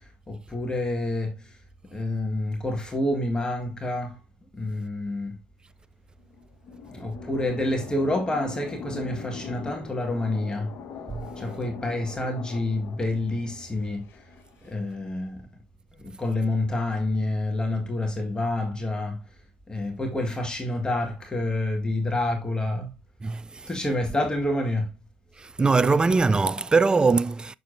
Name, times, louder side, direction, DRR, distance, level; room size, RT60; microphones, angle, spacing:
voice 1, 0.3-1.4 1.9-4.2 4.5-5.4 6.9-10.7 11.4-14.0 14.6-15.4 16.0-19.2 19.7-22.9 23.7-24.9, left 1 dB, 15° left, 1.7 m, -28 dB
sound 1, 6.2-14.7, left 5 dB, 55° left, 1.5 m, -41 dB
voice 2, 23.2-23.7 25.4-27.5, right 4 dB, 20° right, 0.3 m, -22 dB
6.7 x 6.7 x 2.6 m
hypercardioid pair, 70°, 5 cm